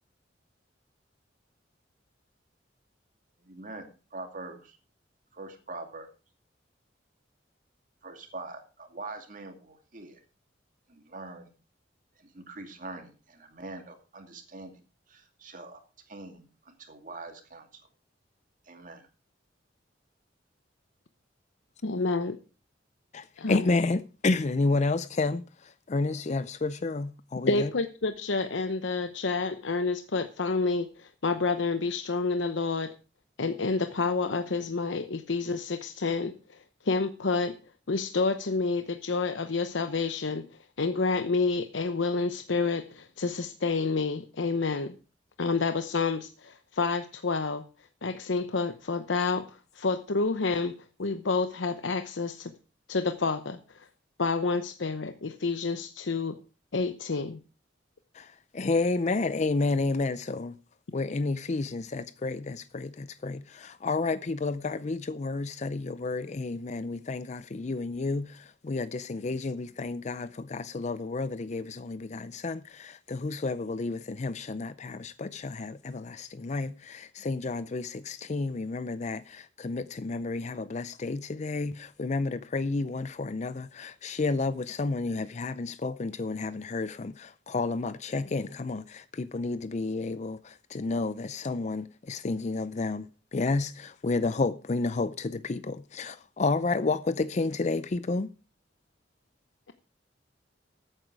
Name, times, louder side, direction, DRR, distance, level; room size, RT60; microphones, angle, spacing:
voice 1, 3.4-4.8 5.3-6.1 8.0-10.2 10.9-11.5 12.2-14.8 15.1-15.8 16.1-17.7 18.7-19.1, right 3 dB, 45° right, 2.4 m, -43 dB
voice 2, 21.8-22.4 23.4-23.7 27.5-32.9 33.4-36.6 36.8-37.6 37.9-40.4 40.8-44.9 45.4-47.6 48.0-50.7 51.0-52.5 52.9-53.9 54.2-56.3 56.7-57.4, left 4 dB, 80° left, 0.8 m, -29 dB
voice 3, 23.1-27.7 58.1-60.6 60.9-98.3, left 3 dB, 40° left, 0.5 m, -31 dB
14.0 x 9.0 x 4.7 m
head